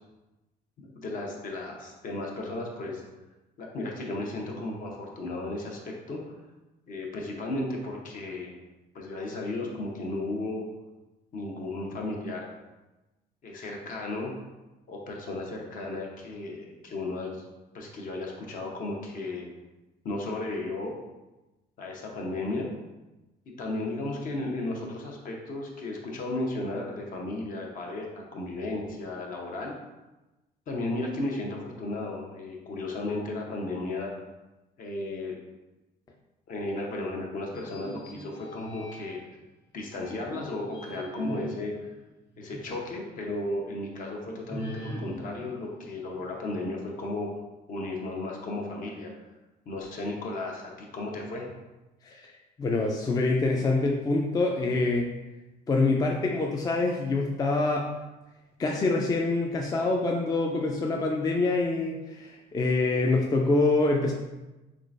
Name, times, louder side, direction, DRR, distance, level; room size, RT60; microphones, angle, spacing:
voice 1, 0.9-3.0 3.6-6.4 6.9-8.5 8.9-10.6 11.3-12.5 13.4-14.3 14.9-17.5 17.7-19.5 20.0-20.9 21.8-22.7 23.6-29.7 30.7-34.1 34.8-35.3 36.5-39.2 39.7-41.9 42.4-47.3 47.7-49.1 49.7-51.5, left 2 dB, 55° left, 0 dB, 0.8 m, -34 dB
sound 1, 37.5-39.3 39.9-42.9 43.3-43.4 44.5-46.6, equal, 80° left, 1.4 m, -42 dB
voice 2, 52.6-55.1 55.7-58.0 58.6-64.1, left 3 dB, 20° left, 0 dB, 0.3 m, -25 dB
3.7 x 3.3 x 2.5 m, 1.1 s
cardioid pair, 110°, 17 cm